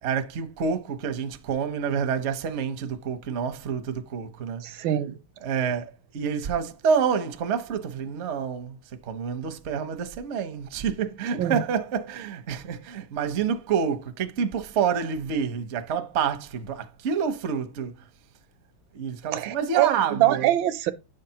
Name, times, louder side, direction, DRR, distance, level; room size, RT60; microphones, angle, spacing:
voice 1, 0.0-4.6 5.4-8.8 9.0-17.9 18.9-20.5, right 7 dB, 55° right, 0.7 m, -28 dB
voice 2, 4.6-5.1 11.4-11.6 19.3-20.9, right 13 dB, 75° right, 1.3 m, -24 dB
9.8 x 6.5 x 2.8 m
omnidirectional pair, 2.2 m